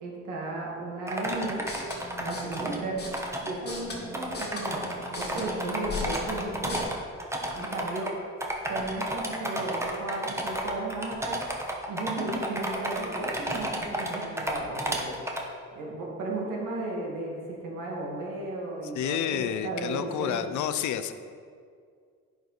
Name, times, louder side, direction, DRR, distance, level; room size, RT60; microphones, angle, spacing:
voice 1, 0.0-1.6 2.2-3.0 3.4-6.9 7.5-8.1 8.7-11.4 11.9-15.2 15.7-20.5, right 2 dB, 90° right, -2 dB, 1.8 m, -35 dB
sound 1, 1.1-2.8 3.1-3.5 3.9-4.0 4.1-8.1 8.4-15.4, right 1 dB, 10° right, 1.0 m, -32 dB
sound 2, 1.5-6.8, left 1 dB, 35° left, 1.7 m, -39 dB
voice 2, 18.9-21.1, left 9 dB, 75° left, 11 dB, 0.6 m, -29 dB
10.0 x 4.6 x 4.0 m, 2.1 s
cardioid pair, 90°, 30 cm